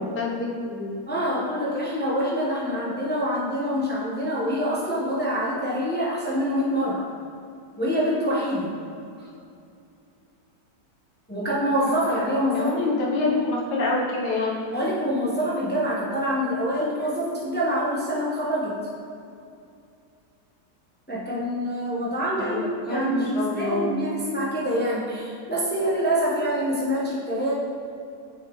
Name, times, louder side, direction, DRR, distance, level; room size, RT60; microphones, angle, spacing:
voice 1, 0.0-0.9 12.5-14.5 22.4-22.6 22.9-23.9, left 2 dB, 70° left, -2 dB, 1.6 m, -26 dB
voice 2, 1.1-7.0 7.8-8.7 11.3-13.4 14.7-18.8 21.1-27.5, equal, 10° left, -5 dB, 0.7 m, -26 dB
7.1 x 6.5 x 3.1 m, 2.5 s
omnidirectional pair, 1.9 m